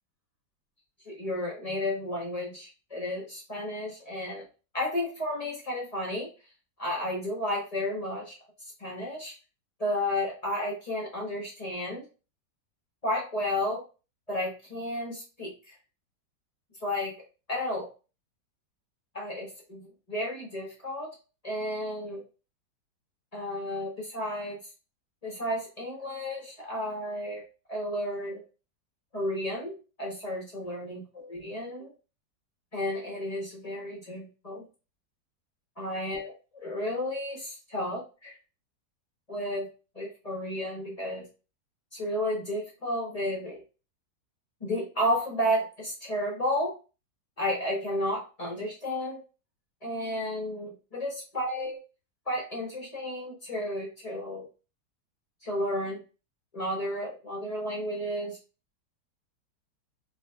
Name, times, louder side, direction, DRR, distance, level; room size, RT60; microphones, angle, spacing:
voice 1, 1.1-4.5 4.7-6.3 6.8-8.4 8.8-9.3 9.8-12.0 13.0-13.8 14.3-15.5 16.8-17.1 17.5-17.9 19.1-21.1 21.4-22.2 23.3-24.6 25.2-27.4 27.7-28.4 29.1-31.9 32.7-34.6 35.8-38.4 39.3-39.7 39.9-41.2 41.9-43.6 44.6-46.7 47.4-49.2 49.8-51.8 52.3-54.5 55.4-56.0 56.5-58.4, left 1 dB, 35° left, -2 dB, 0.6 m, -32 dB
4.2 x 2.6 x 2.2 m, 0.33 s
omnidirectional pair, 1.9 m